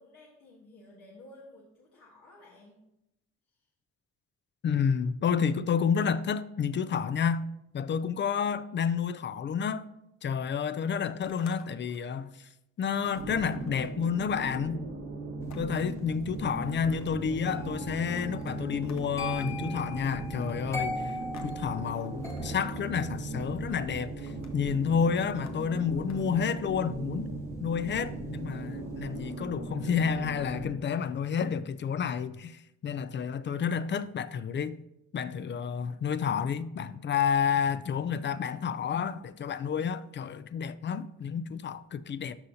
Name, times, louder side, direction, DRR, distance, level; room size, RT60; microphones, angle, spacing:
voice 1, 0.0-2.8 3.6-3.7, left 1 dB, 80° left, 1.4 m, -53 dB
voice 2, 4.6-7.5 7.7-9.9 10.2-12.3 12.8-14.8 15.6-21.1 21.4-27.3 27.6-34.8 35.1-42.4, left 7 dB, 40° left, 0.4 m, -30 dB
sound 1, 11.2-12.2 12.6-12.7 13.0-14.1 15.5-16.0 16.6-17.3 18.0-19.4 20.3-21.5 21.8-22.4 23.4-23.8 24.2-24.7 25.3-26.5, left 6 dB, 65° left, 0.9 m, -55 dB
sound 2, 13.1-30.7, right 2 dB, 80° right, 1.6 m, -38 dB
sound 3, 17.5-28.4 28.7-29.1, left 1 dB, 10° left, 0.9 m, -42 dB
13.0 x 5.6 x 2.7 m
cardioid pair, 90°, 30 cm